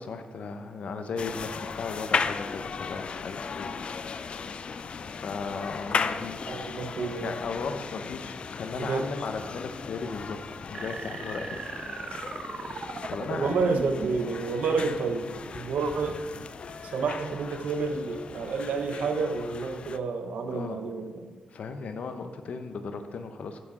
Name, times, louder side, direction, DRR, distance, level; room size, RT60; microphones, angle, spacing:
voice 1, 0.0-3.7 5.1-6.5 7.2-10.4 10.7-11.6 13.1-13.6 20.5-20.8 21.5-23.6, left 4 dB, 65° left, 7 dB, 0.8 m, -36 dB
sound 1, 1.2-20.0, left 5 dB, 50° left, 0.4 m, -36 dB
voice 2, 6.5-7.4 8.8-9.1 13.3-16.5 16.8-21.3, right 4 dB, 85° right, 7 dB, 0.8 m, -30 dB
sound 2, 10.7-14.3, right 4 dB, 50° right, 0.7 m, -38 dB
7.4 x 6.9 x 4.9 m, 1.5 s
wide cardioid pair, 120°, 2 cm